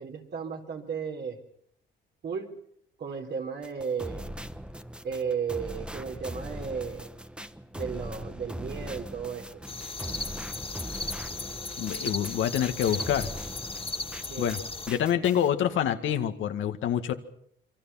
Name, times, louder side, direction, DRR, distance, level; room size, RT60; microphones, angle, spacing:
voice 1, 0.0-1.4 2.2-2.5 3.0-4.2 5.0-7.1 7.7-9.5 14.2-14.5, right 6 dB, 60° right, 3 dB, 4.4 m, -34 dB
sound 1, 3.6-14.6 14.9-15.5, right 1 dB, 5° right, 1.3 m, -40 dB
sound 2, 9.7-14.9, left 3 dB, 30° left, 2.4 m, -36 dB
voice 2, 11.8-13.3 14.4-14.6 14.9-17.1, left 9 dB, 80° left, 7 dB, 2.0 m, -26 dB
27.5 x 24.5 x 5.9 m, 0.67 s
cardioid pair, 90°, 20 cm